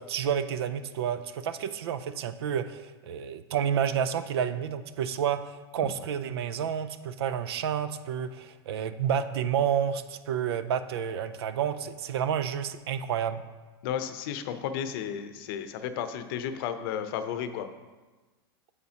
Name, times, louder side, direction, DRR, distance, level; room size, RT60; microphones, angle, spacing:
voice 1, 0.0-13.4, right 8 dB, 75° right, 12 dB, 0.5 m, -30 dB
voice 2, 13.8-17.7, left 8 dB, 60° left, 10 dB, 0.7 m, -33 dB
8.5 x 7.0 x 2.9 m, 1.3 s
hypercardioid pair, 115°, 13 cm